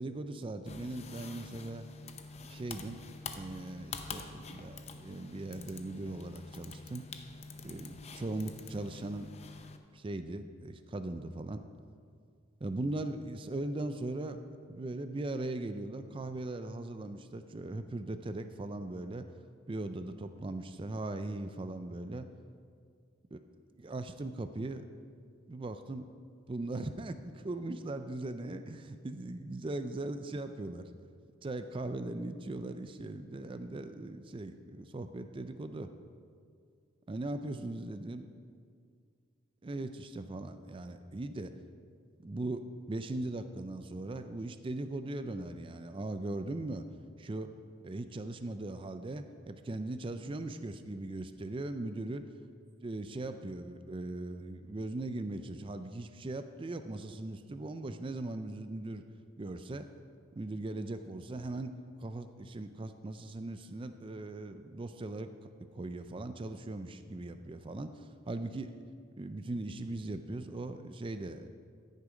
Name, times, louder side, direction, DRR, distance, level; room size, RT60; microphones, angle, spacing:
voice 1, 0.0-1.9 2.5-3.0 3.4-7.0 7.6-9.3 9.9-11.6 12.6-14.4 14.7-19.3 19.7-22.3 23.3-23.4 23.8-24.9 25.5-26.0 26.5-30.9 31.4-35.9 37.1-38.3 39.6-41.5 42.2-46.9 47.2-47.5 47.8-52.2 52.8-59.0 59.4-59.8 60.4-61.7 62.0-65.3 65.7-68.7 69.2-71.5, right 2 dB, 25° right, 9 dB, 0.4 m, -39 dB
sound 1, 0.7-9.8, left 4 dB, 30° left, 0.5 m, -46 dB
14.0 x 6.7 x 5.0 m, 2.2 s
head